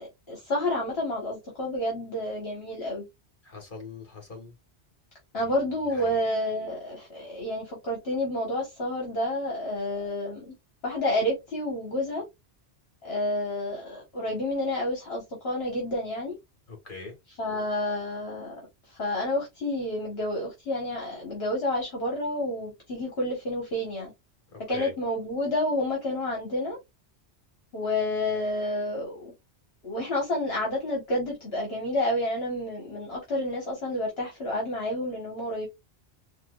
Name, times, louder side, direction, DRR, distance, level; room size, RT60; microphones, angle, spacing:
voice 1, 0.0-3.1 5.3-10.5 10.8-12.2 13.0-16.3 17.4-18.5 18.9-24.1 24.7-26.8 27.7-29.3 29.8-35.7, left 1 dB, 65° left, 1.6 m, -29 dB
voice 2, 3.4-4.5 5.3-5.5 5.9-6.2 16.7-17.1 24.5-24.9, left 3 dB, 50° left, 1.9 m, -42 dB
4.4 x 2.3 x 2.4 m
omnidirectional pair, 1.1 m